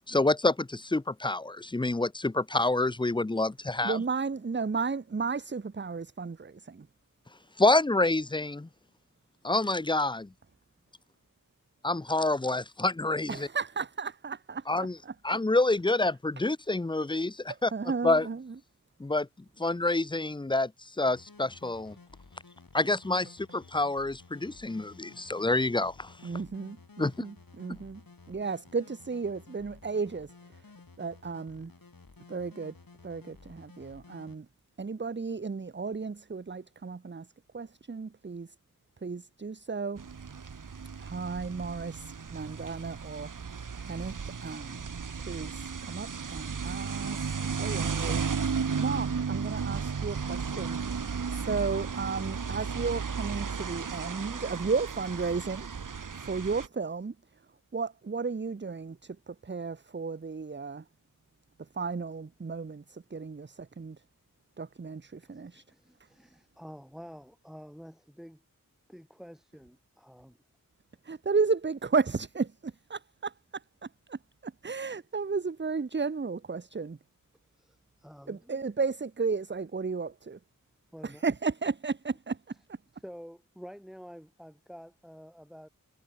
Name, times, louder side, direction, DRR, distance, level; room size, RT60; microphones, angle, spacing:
voice 1, 0.1-4.0 7.6-8.7 9.4-10.3 11.8-13.5 14.7-15.0 15.2-17.7 18.0-18.3 19.0-19.3 19.6-22.0 22.7-26.1 27.0-27.2 27.7-27.8, left 2 dB, 15° left, 0.5 m, -27 dB
voice 2, 3.8-6.9 13.3-15.1 17.5-18.5 26.2-28.0 28.3-30.6 31.0-31.7 32.3-32.7 33.0-34.5 34.8-37.3 37.5-38.5 39.0-40.1 41.0-43.3 43.8-44.9 45.3-50.8 51.3-55.7 56.1-57.1 57.7-60.8 61.6-64.0 64.6-65.6 71.0-77.0 78.3-80.4 81.0-82.4, right 4 dB, 35° right, 0.7 m, -34 dB
sound 1, 21.0-34.4, left 4 dB, 80° left, 5.9 m, -54 dB
sound 2, 40.0-56.7, right 6 dB, 65° right, 1.0 m, -34 dB
voice 3, 65.2-68.4 68.9-70.4 77.5-78.6 80.9-81.2 82.9-85.7, equal, ahead, 2.9 m, -49 dB
wide cardioid pair, 40°, 34 cm